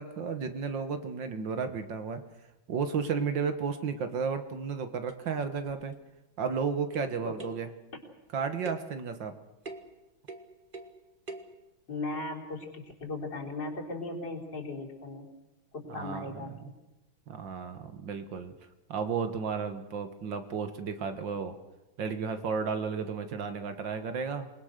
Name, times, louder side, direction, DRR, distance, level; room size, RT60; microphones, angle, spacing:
voice 1, 0.0-2.2 2.7-5.9 6.4-7.7 8.3-9.3 15.9-16.5 17.3-18.5 18.9-21.6 22.0-24.5, right 5 dB, 65° right, 8 dB, 2.0 m, -33 dB
sound 1, 4.7-4.8 5.1-5.9 6.9-7.1 7.4-7.7 8.6-9.0 9.7-10.0 10.3-11.0 11.3-11.6, right 2 dB, 25° right, 1.6 m, -44 dB
voice 2, 11.9-15.3 15.7-16.7, left 2 dB, 60° left, -2 dB, 4.7 m, -37 dB
27.5 x 20.5 x 6.6 m, 1.0 s
omnidirectional pair, 2.2 m